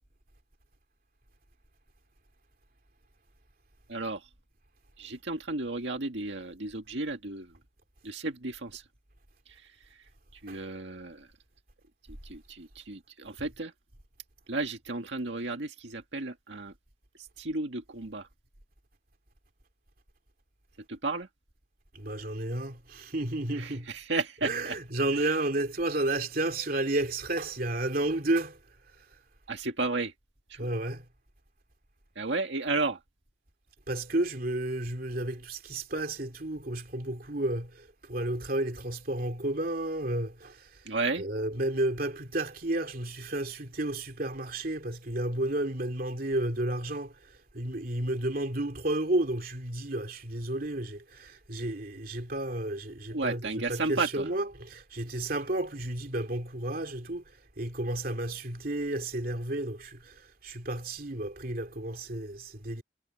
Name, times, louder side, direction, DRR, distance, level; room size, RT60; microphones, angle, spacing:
voice 1, 3.9-4.3 5.0-7.5 8.0-8.9 9.5-10.0 10.3-11.3 12.2-13.7 14.5-16.7 17.2-18.3 20.9-21.3 23.5-24.8 25.1-25.3 29.5-30.1 30.5-30.7 32.2-33.0 40.9-41.3 53.1-54.3, right 3 dB, 75° right, 1.9 m, -33 dB
voice 2, 21.9-23.9 24.4-28.6 28.9-29.2 30.6-31.1 33.9-40.9 41.2-62.8, right 1 dB, 50° right, 2.7 m, -32 dB
head